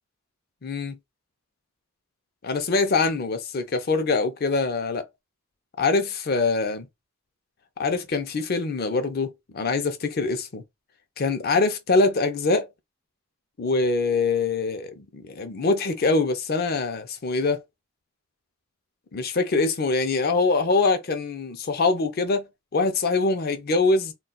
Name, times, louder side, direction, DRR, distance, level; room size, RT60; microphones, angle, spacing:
voice 1, 0.6-1.0 2.4-5.1 5.8-6.9 7.8-10.6 11.2-12.7 13.6-17.6 19.1-22.5 22.7-24.1, left 3 dB, 45° left, 0.5 m, -24 dB
2.3 x 2.3 x 3.8 m
head